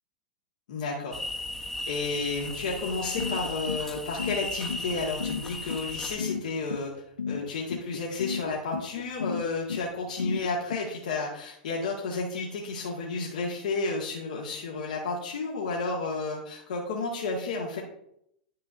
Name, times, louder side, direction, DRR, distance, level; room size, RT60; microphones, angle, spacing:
voice 1, 0.7-1.2 1.9-6.9 7.3-17.8, left 3 dB, 60° left, -3 dB, 1.7 m, -32 dB
sound 1, 1.1-6.2, left 1 dB, 10° left, 1.1 m, -36 dB
sound 2, 3.2-10.8, left 6 dB, 75° left, 0.4 m, -33 dB
10.5 x 6.7 x 2.6 m, 0.75 s
figure-of-eight pair, 95°, 5 cm